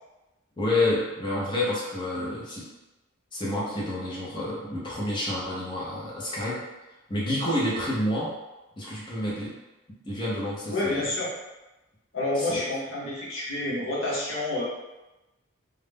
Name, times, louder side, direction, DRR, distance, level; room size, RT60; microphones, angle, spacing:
voice 1, 0.6-2.7 3.3-6.6 7.1-8.4 8.8-9.6 10.0-11.1 12.4-12.6, left 1 dB, 25° left, -6 dB, 0.6 m, -29 dB
voice 2, 10.7-11.3 12.1-14.6, left 2 dB, 75° left, -6 dB, 0.8 m, -28 dB
2.4 x 2.1 x 3.3 m, 1.0 s
head